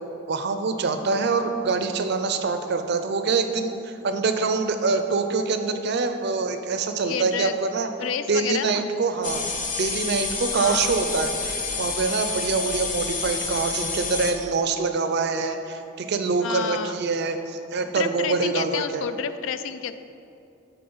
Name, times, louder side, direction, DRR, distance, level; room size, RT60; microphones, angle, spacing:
voice 1, 0.3-7.9 8.3-9.4 9.8-19.1, right 4 dB, 55° right, 8 dB, 0.5 m, -25 dB
voice 2, 7.0-7.6 8.0-8.9 10.6-11.0 16.4-17.0 17.9-19.9, left 7 dB, 70° left, 12 dB, 0.3 m, -30 dB
sound 1, 9.2-14.3, left 4 dB, 40° left, 0.7 m, -29 dB
7.7 x 4.1 x 5.4 m, 2.7 s
head